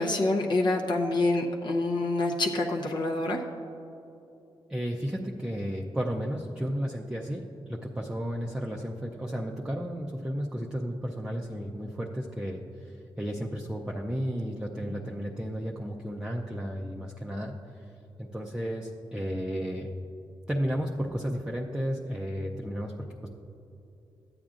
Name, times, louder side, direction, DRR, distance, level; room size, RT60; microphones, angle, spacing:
voice 1, 0.0-3.4, left 2 dB, 55° left, -1 dB, 0.7 m, -26 dB
voice 2, 4.7-17.9 18.2-19.9 20.5-23.3, equal, 10° right, -2 dB, 0.5 m, -33 dB
13.0 x 8.7 x 2.5 m, 2.9 s
cardioid pair, 90°, 9 cm